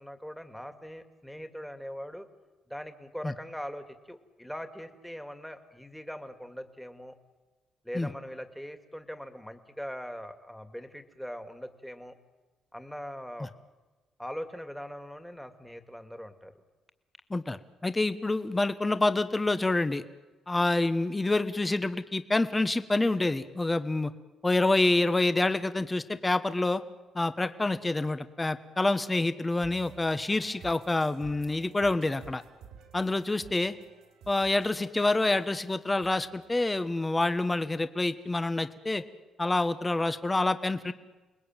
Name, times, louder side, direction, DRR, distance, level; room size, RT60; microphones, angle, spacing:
voice 1, 0.0-2.3 2.7-7.2 7.8-12.1 12.7-13.5 14.2-16.5, equal, ahead, 7 dB, 2.4 m, -41 dB
voice 2, 17.3-20.0 20.5-24.1 24.4-26.8 27.1-32.4 32.9-33.7 34.3-39.0 39.4-40.9, left 2 dB, 20° left, 10 dB, 1.4 m, -27 dB
sound 1, 29.6-37.4, right 7 dB, 85° right, 4.8 m, -53 dB
29.5 x 20.5 x 9.2 m, 1.2 s
cardioid pair, 90°, 0 cm